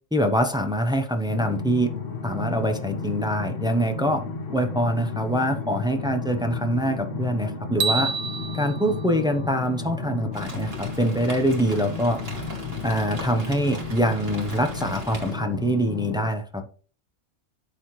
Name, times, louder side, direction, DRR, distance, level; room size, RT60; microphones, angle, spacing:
voice 1, 0.1-1.9 2.2-4.2 4.5-8.1 8.5-12.2 12.8-16.6, equal, 5° right, 5 dB, 0.4 m, -24 dB
sound 1, 1.3-16.3, left 4 dB, 65° left, 1.6 m, -33 dB
sound 2, 7.8-10.1, right 6 dB, 70° right, 0.9 m, -30 dB
Rain, 10.3-15.3, right 1 dB, 45° right, 2.3 m, -39 dB
12.0 x 4.1 x 3.1 m, 0.41 s
omnidirectional pair, 1.4 m